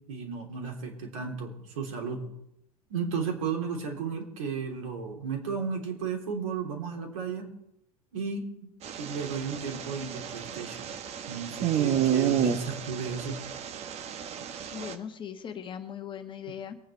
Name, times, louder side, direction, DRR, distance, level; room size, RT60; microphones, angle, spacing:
voice 1, 0.1-2.2 2.9-7.5 8.1-8.7 9.0-10.9 11.3-13.4, right 5 dB, 60° right, 2 dB, 3.5 m, -34 dB
sound 1, 8.8-15.0, right 9 dB, 35° right, 1.2 m, -31 dB
voice 2, 14.7-16.8, left 8 dB, 25° left, 6 dB, 1.3 m, -39 dB
23.0 x 9.2 x 4.5 m, 0.81 s
figure-of-eight pair, 85°, 20 cm